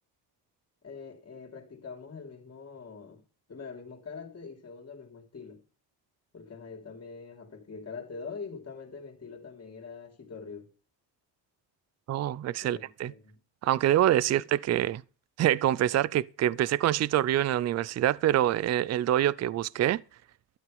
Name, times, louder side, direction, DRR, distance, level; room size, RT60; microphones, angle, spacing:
voice 1, 0.8-3.2 3.5-5.6 6.3-10.7 12.6-13.4 14.2-14.5, left 5 dB, 35° left, 3.5 m, -44 dB
voice 2, 12.1-13.1 13.6-15.0 15.4-20.0, right 12 dB, 40° right, 0.5 m, -25 dB
12.5 x 8.0 x 5.3 m
cardioid pair, 115°, 42 cm